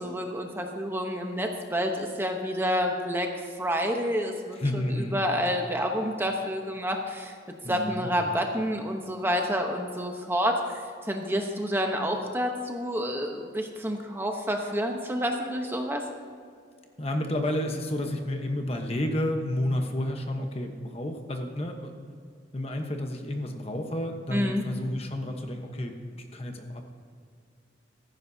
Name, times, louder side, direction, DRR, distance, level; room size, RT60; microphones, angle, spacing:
voice 1, 0.0-7.3 7.7-16.0 24.3-24.6, equal, 10° right, 3 dB, 0.9 m, -29 dB
voice 2, 4.5-5.2 7.6-8.1 17.0-22.1 22.5-26.9, left 1 dB, 35° left, 4 dB, 1.1 m, -31 dB
16.0 x 14.5 x 2.8 m, 2.2 s
head